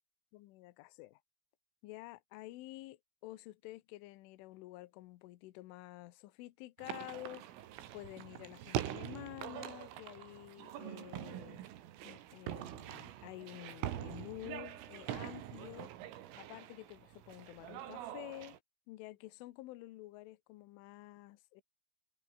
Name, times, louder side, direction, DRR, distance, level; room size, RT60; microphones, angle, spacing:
voice 1, 0.3-1.2 1.8-7.5 7.9-11.6 12.1-15.9 16.4-18.6 18.9-21.6, left 18 dB, 80° left, 3.5 m, -50 dB
sound 1, 6.8-18.6, right 12 dB, 80° right, 4.7 m, -44 dB
omnidirectional pair, 5.8 m